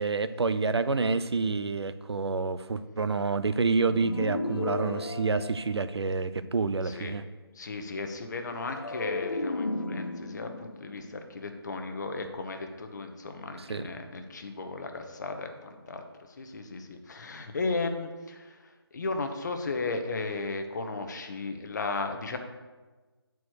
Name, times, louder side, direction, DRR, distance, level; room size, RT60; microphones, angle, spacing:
voice 1, 0.0-7.2 13.7-13.8, right 4 dB, 90° right, 12 dB, 0.6 m, -28 dB
sound 1, 3.9-6.3 8.7-12.0, left 2 dB, 65° left, 1.6 m, -35 dB
voice 2, 6.8-7.2 7.5-16.1 16.4-22.4, left 3 dB, 45° left, 5 dB, 1.0 m, -35 dB
8.2 x 4.7 x 6.5 m, 1.3 s
figure-of-eight pair, 165°, 13 cm